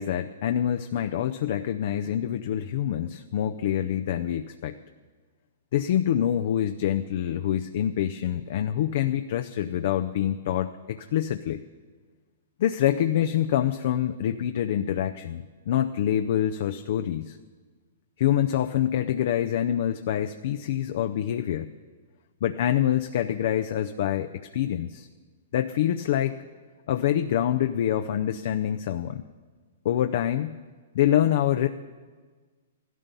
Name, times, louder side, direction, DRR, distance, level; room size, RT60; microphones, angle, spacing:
voice 1, 0.0-4.8 5.7-11.6 12.6-17.4 18.2-21.7 22.4-25.1 25.5-26.4 26.9-29.2 29.8-30.6 30.9-31.7, left 10 dB, 55° left, 7 dB, 0.6 m, -26 dB
15.0 x 12.5 x 5.4 m, 1.4 s
hypercardioid pair, 140°, 0 cm